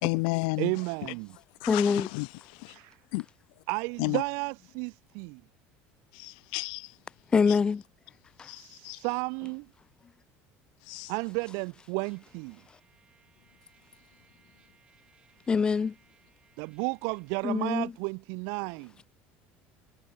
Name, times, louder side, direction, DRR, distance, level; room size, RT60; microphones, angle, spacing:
voice 1, 0.0-1.1 1.6-2.8 3.1-3.3 4.0-4.2 6.1-7.0 8.4-9.0 10.8-11.1, left 32 dB, 85° left, 0.5 m, -33 dB
voice 2, 0.6-1.3 2.7-3.0 3.7-5.4 8.6-9.7 11.1-12.6 16.6-18.9, right 36 dB, 70° right, 0.3 m, -33 dB
voice 3, 1.7-2.1 7.3-7.8 8.4-8.5 12.7-12.8 15.5-16.0 17.4-17.9, left 5 dB, 20° left, 0.6 m, -25 dB
Trumpet, 12.1-17.4, right 6 dB, 20° right, 6.2 m, -65 dB
cardioid pair, 150°, 5 cm